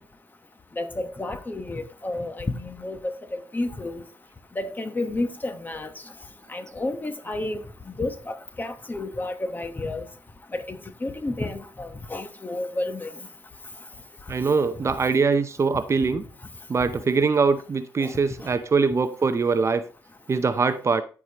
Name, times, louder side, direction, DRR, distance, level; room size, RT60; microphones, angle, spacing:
voice 1, 0.8-3.1 3.5-4.0 4.6-5.9 6.5-7.6 7.9-10.1 10.5-13.1 18.0-18.1, left 2 dB, 25° left, 1.0 m, -31 dB
voice 2, 14.3-16.2 16.7-19.9 20.3-21.0, right 4 dB, 35° right, 0.6 m, -22 dB
13.5 x 4.8 x 2.9 m
cardioid pair, 90°, 8 cm